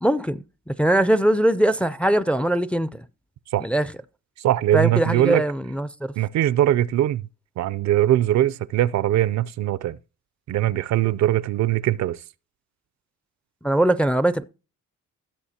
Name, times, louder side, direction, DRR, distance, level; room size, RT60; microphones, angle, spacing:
voice 1, 0.0-3.0 3.6-3.9 4.7-6.1 13.6-14.4, right 1 dB, 5° left, 0.4 m, -21 dB
voice 2, 4.4-5.4 6.2-7.2 7.6-10.0 10.5-12.2, right 13 dB, 60° right, 0.5 m, -21 dB
16.0 x 6.9 x 2.8 m
cardioid pair, 90°, 31 cm